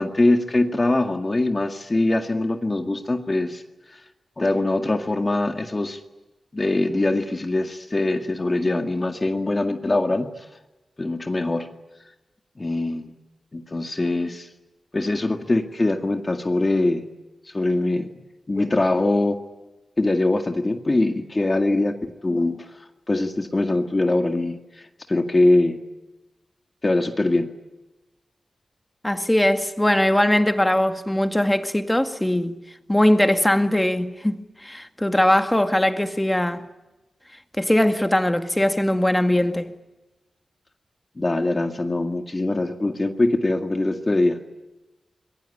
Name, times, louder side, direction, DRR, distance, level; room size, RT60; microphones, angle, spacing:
voice 1, 0.0-3.6 3.9-4.0 4.4-6.0 6.5-10.5 11.0-11.7 12.6-13.1 13.5-14.5 14.9-17.1 17.4-18.1 18.5-19.4 20.0-21.9 22.2-25.8 26.8-27.5 41.2-44.4, left 2 dB, 30° left, 2.0 m, -22 dB
voice 2, 29.0-32.5 32.9-36.7 37.6-39.7, left 1 dB, 10° left, 2.0 m, -20 dB
26.0 x 22.0 x 9.9 m
wide cardioid pair, 95°, 0 cm